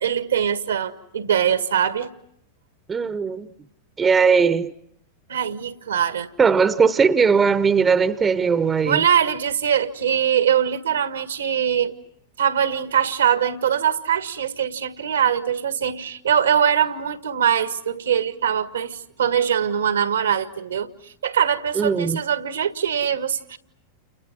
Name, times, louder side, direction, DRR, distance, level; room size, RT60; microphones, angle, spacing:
voice 1, 0.0-2.1 5.3-6.3 8.9-11.9 12.4-23.6, right 8 dB, 70° right, 1.6 m, -22 dB
voice 2, 2.9-3.5 4.0-4.7 6.4-9.0 21.7-22.2, right 5 dB, 20° right, 1.0 m, -19 dB
30.0 x 30.0 x 6.2 m
figure-of-eight pair, 90°, 0 cm